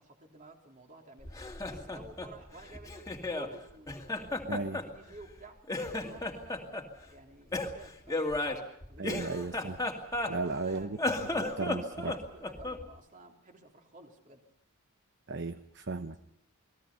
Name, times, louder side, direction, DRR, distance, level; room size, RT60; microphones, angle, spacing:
voice 1, 0.0-1.3 1.7-3.9 4.2-5.6 6.0-9.3 10.3-14.4, right 2 dB, 35° right, 3 dB, 3.5 m, -52 dB
Laughter, 1.2-3.5 3.9-5.4 5.7-6.9 7.5-10.6 10.9-12.9, left 2 dB, 15° left, 2.3 m, -34 dB
voice 2, 4.5-4.8 9.0-9.8 10.3-11.0 11.4-12.2 15.3-16.3, right 3 dB, 55° right, 10 dB, 0.9 m, -35 dB
29.5 x 20.5 x 5.7 m, 0.75 s
head